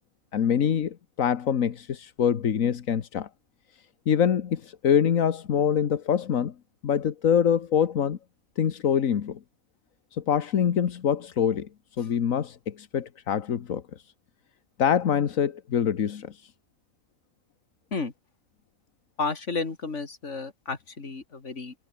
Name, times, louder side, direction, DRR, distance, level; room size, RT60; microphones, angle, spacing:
voice 1, 0.3-3.3 4.1-6.5 6.8-8.2 8.6-9.4 10.1-11.7 12.0-13.8 14.8-16.4, left 8 dB, 85° left, 1.6 m, -25 dB
voice 2, 19.2-21.7, left 4 dB, 65° left, 3.0 m, -32 dB
omnidirectional pair, 1.4 m